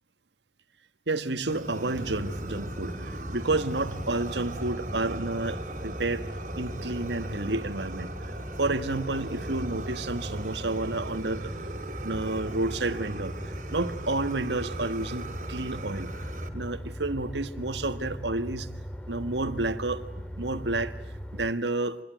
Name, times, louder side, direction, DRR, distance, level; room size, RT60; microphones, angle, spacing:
voice 1, 1.1-6.3 6.5-8.1 8.6-11.5 12.0-13.3 13.7-16.1 16.5-18.7 19.1-20.1 20.4-21.0 21.3-22.0, right 2 dB, 80° right, 1.6 m, -30 dB
Fire, 1.5-16.5, right 2 dB, 45° right, 3.2 m, -39 dB
sound 1, 1.9-21.5, equal, 5° left, 2.2 m, -39 dB
27.0 x 21.5 x 9.2 m
head